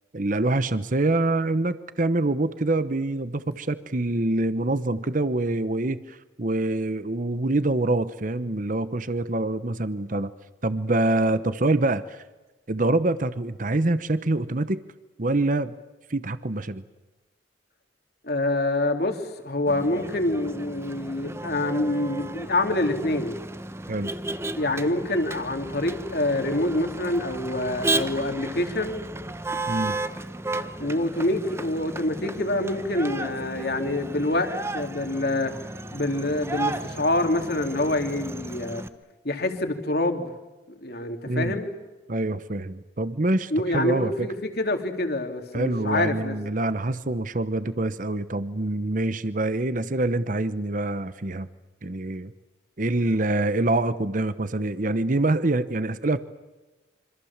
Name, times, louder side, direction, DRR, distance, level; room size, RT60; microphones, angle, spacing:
voice 1, 0.1-10.3 10.6-12.2 12.7-14.8 15.2-15.8 16.1-16.8 23.9-24.1 29.7-30.0 41.3-41.5 42.1-44.3 45.5-51.5 51.8-52.3 52.8-56.2, right 2 dB, 45° right, 13 dB, 1.0 m, -25 dB
voice 2, 18.2-23.4 24.5-29.1 30.8-35.5 35.9-38.8 39.2-40.3 40.8-41.7 43.5-46.3, left 1 dB, 55° left, 5 dB, 3.0 m, -26 dB
Motor vehicle (road), 19.7-38.9, right 2 dB, 15° right, 1.0 m, -34 dB
27.0 x 25.5 x 7.4 m, 1.1 s
head